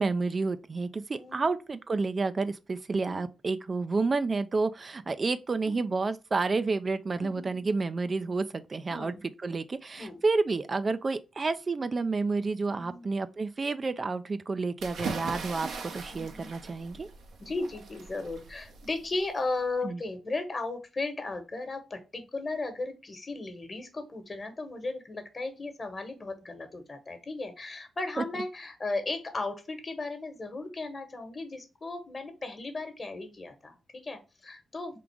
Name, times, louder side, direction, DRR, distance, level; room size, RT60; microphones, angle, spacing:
voice 1, 0.0-9.1 9.4-15.7 15.9-17.1 19.8-20.0 28.2-28.3, right 3 dB, 40° right, 0.3 m, -30 dB
voice 2, 1.1-1.5 3.1-3.2 5.6-5.8 7.2-7.7 8.9-9.2 10.0-10.2 12.6-13.1 16.1-16.5 17.4-35.0, left 3 dB, 40° left, 1.2 m, -36 dB
sound 1, 14.8-19.6, right 4 dB, 80° right, 0.8 m, -40 dB
3.7 x 2.5 x 4.6 m
supercardioid pair, 50°, 0 cm